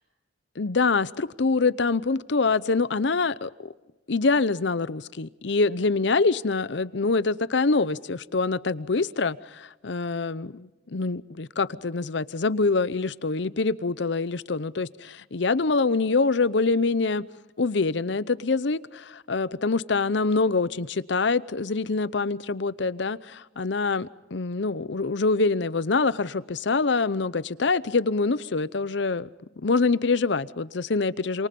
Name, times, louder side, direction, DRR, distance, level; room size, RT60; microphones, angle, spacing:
voice 1, 0.6-3.7 4.1-17.2 17.6-29.3 29.6-31.5, left 3 dB, 65° left, 0.7 m, -25 dB
28.5 x 27.0 x 5.4 m
head